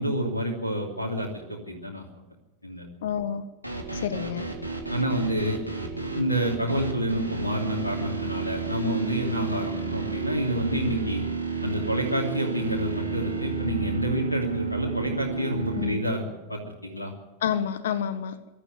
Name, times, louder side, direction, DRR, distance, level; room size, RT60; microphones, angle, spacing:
voice 1, 0.0-2.0 2.6-2.9 4.9-5.6 6.0-11.2 11.6-16.2 16.5-17.1, equal, 80° left, -1 dB, 3.0 m, -28 dB
voice 2, 3.0-3.4 3.9-4.5 15.7-16.0 17.4-18.4, left 8 dB, 60° left, 13 dB, 1.3 m, -28 dB
sound 1, 3.6-15.9, right 5 dB, 90° right, 3.3 m, -31 dB
23.0 x 12.5 x 9.6 m, 1.1 s
figure-of-eight pair, 90°, 0 cm